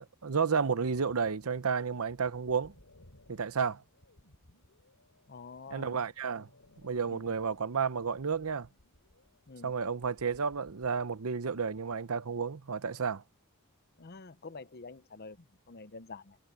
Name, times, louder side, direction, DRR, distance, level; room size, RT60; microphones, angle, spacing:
voice 1, 0.2-2.7 3.3-3.8 5.7-6.5 6.8-8.7 9.6-13.2, right 5 dB, 75° right, 0.8 m, -31 dB
sound 1, 0.8-12.0, left 1 dB, 80° left, 3.7 m, -62 dB
voice 2, 5.3-6.0 7.1-7.2 9.5-9.7 14.0-16.4, left 4 dB, 45° left, 0.8 m, -47 dB
head